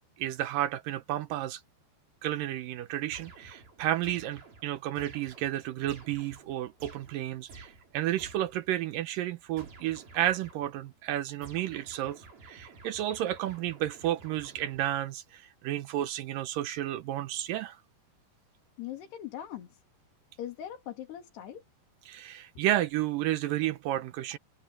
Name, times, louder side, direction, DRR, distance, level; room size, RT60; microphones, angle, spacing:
voice 1, 0.2-1.6 2.2-17.8 22.1-24.4, right 13 dB, 75° right, 2.1 m, -32 dB
sound 1, 3.1-8.7 9.6-10.9 11.4-15.1, right 3 dB, 60° right, 8.0 m, -52 dB
voice 2, 18.8-19.8 20.4-21.6, left 11 dB, 75° left, 4.9 m, -40 dB
omnidirectional pair, 4.8 m